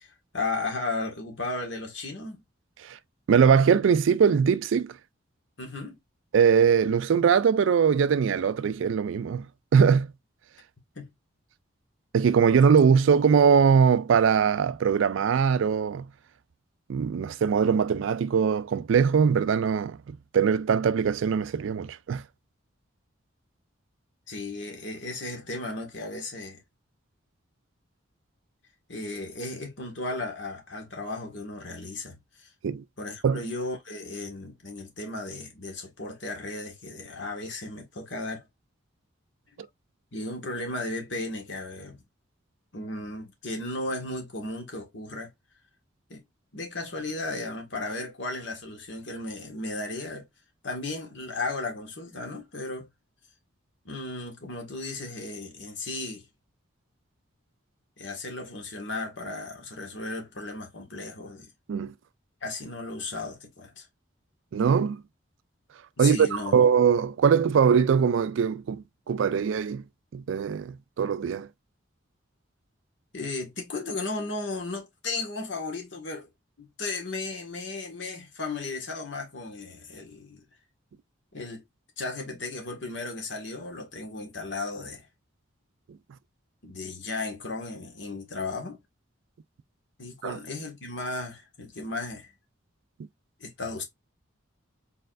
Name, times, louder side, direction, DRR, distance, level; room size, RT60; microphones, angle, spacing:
voice 1, 0.0-2.4 5.6-5.9 10.9-11.1 24.3-26.6 28.9-32.5 33.0-38.5 40.1-42.0 42.7-45.3 46.1-46.2 46.5-50.3 50.6-52.9 53.8-56.3 58.0-61.5 62.4-63.9 66.0-66.6 73.1-76.3 76.6-80.4 81.3-81.6 82.0-85.1 86.6-88.8 90.0-92.3 93.4-93.8, left 2 dB, 65° left, 1.7 m, -35 dB
voice 2, 3.3-4.9 6.3-9.5 9.7-10.1 12.1-16.1 16.9-22.2 32.6-32.8 33.2-33.4 61.7-61.9 64.5-65.0 66.0-69.8 70.1-71.5 90.2-90.4, right 6 dB, 70° right, 0.3 m, -22 dB
4.4 x 4.1 x 2.5 m
head